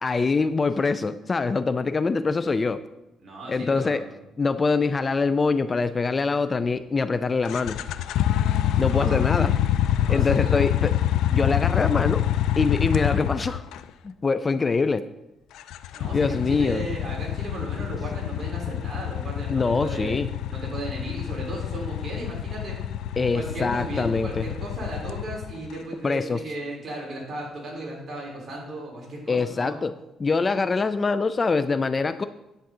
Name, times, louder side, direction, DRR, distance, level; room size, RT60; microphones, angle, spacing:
voice 1, 0.0-2.8 3.5-4.0 4.4-7.8 8.8-9.6 10.1-10.9 11.3-12.2 12.6-13.6 14.0-15.0 16.1-16.8 19.5-20.3 23.2-24.5 26.0-26.4 29.3-29.9 30.2-32.3, left 4 dB, 25° left, 13 dB, 0.4 m, -24 dB
voice 2, 3.2-4.2 8.8-9.6 10.0-10.6 15.9-20.2 20.5-22.8 23.3-29.8, right 1 dB, 40° right, -3 dB, 3.9 m, -36 dB
sound 1, 7.5-13.8 15.6-25.7, left 11 dB, 90° left, 0.4 m, -26 dB
10.5 x 8.3 x 3.8 m, 0.93 s
cardioid pair, 120°, 0 cm